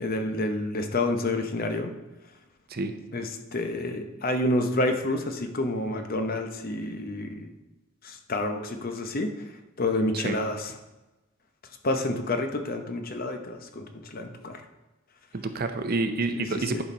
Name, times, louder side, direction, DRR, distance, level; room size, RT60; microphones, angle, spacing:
voice 1, 0.0-1.9 3.1-7.5 8.0-9.3 9.8-10.7 11.8-14.6 16.4-16.5 16.7-16.8, left 2 dB, 45° left, 6 dB, 0.8 m, -29 dB
voice 2, 15.3-16.8, right 3 dB, 50° right, 8 dB, 0.7 m, -28 dB
10.0 x 4.3 x 5.2 m, 1.1 s
head